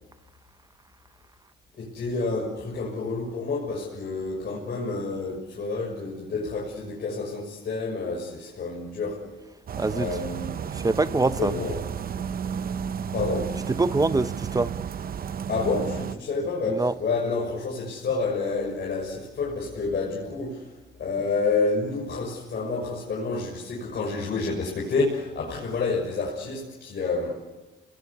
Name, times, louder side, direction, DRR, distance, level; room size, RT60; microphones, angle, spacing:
voice 1, 1.7-9.2 9.9-10.6 11.3-11.8 13.1-13.6 15.5-20.7 21.0-27.4, left 3 dB, 55° left, -3 dB, 6.5 m, -29 dB
sound 1, 9.7-16.2, right 7 dB, 50° right, 0.9 m, -32 dB
voice 2, 9.8-10.1 10.8-11.5 13.8-14.7 16.7-16.9, right 3 dB, 20° right, 14 dB, 0.8 m, -23 dB
28.0 x 20.5 x 8.4 m, 1.1 s
cardioid pair, 90°, 20 cm